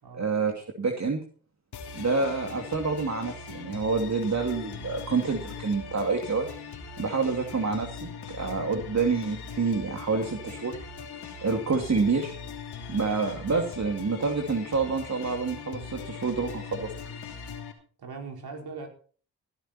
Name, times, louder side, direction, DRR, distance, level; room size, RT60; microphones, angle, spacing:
voice 1, 0.1-1.2 1.9-6.5 7.0-10.8 11.4-12.3 12.9-16.9, right 4 dB, 45° right, 3 dB, 2.7 m, -28 dB
sound 1, 1.7-17.7, left 5 dB, 75° left, 3.2 m, -40 dB
voice 2, 18.0-18.9, right 4 dB, 65° right, 3 dB, 4.7 m, -39 dB
17.0 x 11.5 x 4.3 m, 0.42 s
supercardioid pair, 45°, 40 cm